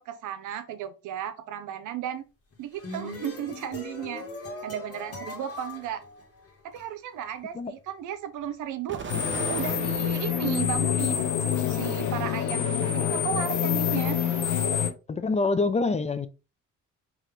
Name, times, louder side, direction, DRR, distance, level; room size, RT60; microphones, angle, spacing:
voice 1, 0.0-2.2 2.6-4.2 4.6-6.0 6.6-9.0 9.5-11.4 11.7-14.2, right 9 dB, 80° right, 0.7 m, -34 dB
sound 1, 2.5-6.8, left 1 dB, 50° left, 1.6 m, -40 dB
Explosion, 8.9-10.5 11.1-12.0, right 5 dB, 40° right, 1.0 m, -38 dB
sound 2, 9.1-14.9, left 9 dB, 75° left, 0.9 m, -26 dB
voice 2, 15.1-16.3, left 3 dB, 20° left, 0.5 m, -25 dB
4.1 x 3.0 x 3.3 m
cardioid pair, 90°, 30 cm